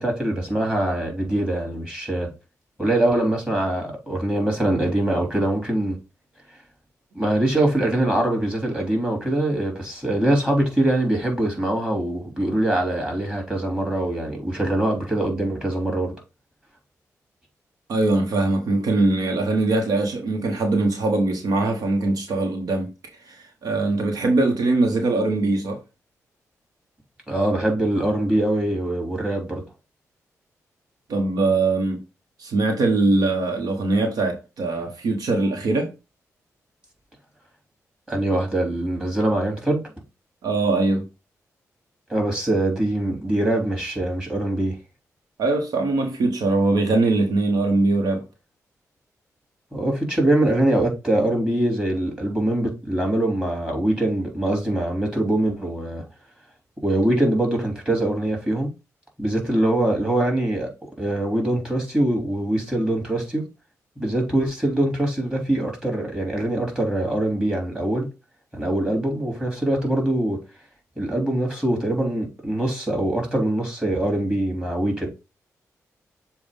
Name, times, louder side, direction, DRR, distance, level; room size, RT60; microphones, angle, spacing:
voice 1, 0.0-2.3 2.8-6.0 7.1-16.1 27.3-29.6 38.1-39.8 42.1-44.7 49.7-56.0 56.8-58.7 59.2-60.7 61.0-63.4 64.0-68.1 68.5-70.4 71.0-75.1, right 1 dB, 15° right, 3.3 m, -23 dB
voice 2, 17.9-22.9 23.2-25.8 31.1-32.0 32.4-35.9 40.4-41.1 45.4-48.2, right 2 dB, 80° right, 1.2 m, -22 dB
7.1 x 2.5 x 5.3 m
cardioid pair, 60°, 6 cm